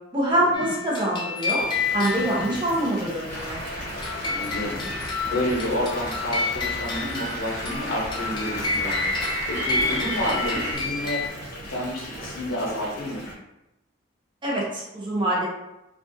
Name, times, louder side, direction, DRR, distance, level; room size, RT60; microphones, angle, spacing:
voice 1, 0.1-1.6 1.9-3.6 14.4-15.5, right 1 dB, 25° right, -4 dB, 0.6 m, -25 dB
sound 1, 0.5-2.9 4.0-11.3, left 4 dB, 25° left, 0.4 m, -30 dB
Water tap faucet / Bathtub (filling or washing) / Fill (with liquid), 1.6-13.3, equal, 45° left, 0.8 m, -39 dB
sound 2, 3.3-10.7, equal, 40° right, 1.0 m, -32 dB
voice 2, 4.3-4.8 5.3-9.0 9.5-11.2 11.7-13.3, left 1 dB, 85° left, -2 dB, 0.7 m, -29 dB
2.5 x 2.3 x 2.6 m, 0.92 s
head